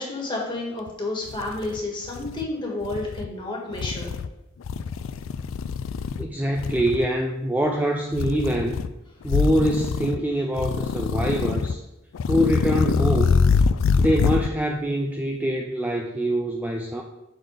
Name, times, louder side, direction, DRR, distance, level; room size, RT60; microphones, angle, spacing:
voice 1, 0.0-4.1, left 2 dB, 25° left, -2 dB, 1.5 m, -30 dB
sound 1, 0.9-1.0 1.3-2.4 2.8-3.3 3.7-4.3 4.6-6.3 6.6-7.1 8.1-8.9 9.2-10.2 10.6-11.8 12.1-14.5, left 5 dB, 80° left, 0.4 m, -24 dB
voice 2, 6.2-8.8 9.2-11.8 12.3-13.3 14.0-17.0, right 1 dB, 10° right, 1 dB, 0.4 m, -24 dB
6.4 x 3.9 x 5.0 m, 0.94 s
head